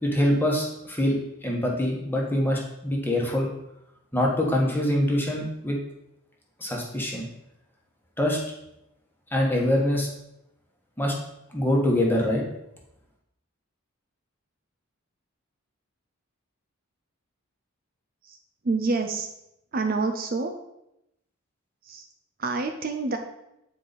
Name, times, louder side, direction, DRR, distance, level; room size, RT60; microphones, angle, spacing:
voice 1, 0.0-3.5 4.1-5.8 6.6-7.3 8.2-8.4 9.3-10.1 11.0-11.1 11.5-12.4, left 1 dB, 10° left, -1 dB, 1.3 m, -24 dB
voice 2, 18.6-19.3 19.7-20.5 21.8-22.1 22.4-23.2, right 3 dB, 45° right, 5 dB, 0.5 m, -27 dB
8.4 x 4.7 x 4.1 m, 0.84 s
head